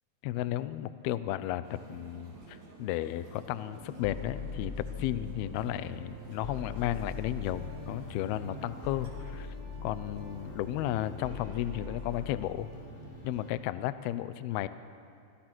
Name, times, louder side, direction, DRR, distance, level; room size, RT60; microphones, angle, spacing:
voice 1, 0.2-9.5 9.8-12.7 13.2-14.7, left 13 dB, 80° left, 13 dB, 2.3 m, -34 dB
sound 1, 1.3-13.7, right 4 dB, 85° right, 4.7 m, -55 dB
sound 2, 1.6-9.1, right 2 dB, 40° right, 4.3 m, -53 dB
sound 3, 1.8-2.0 4.0-6.1 6.4-13.5, left 3 dB, 10° left, 4.9 m, -42 dB
26.0 x 24.5 x 6.2 m, 2.4 s
omnidirectional pair, 5.3 m